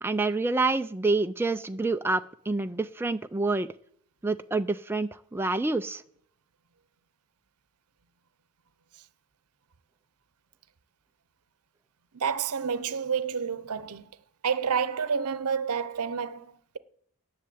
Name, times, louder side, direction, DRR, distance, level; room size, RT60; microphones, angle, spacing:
voice 1, 0.0-3.7 4.2-6.0, right 3 dB, 10° right, 0.4 m, -27 dB
voice 2, 12.1-14.1 14.4-16.8, right 6 dB, 85° right, 0.8 m, -29 dB
10.5 x 6.7 x 8.6 m
head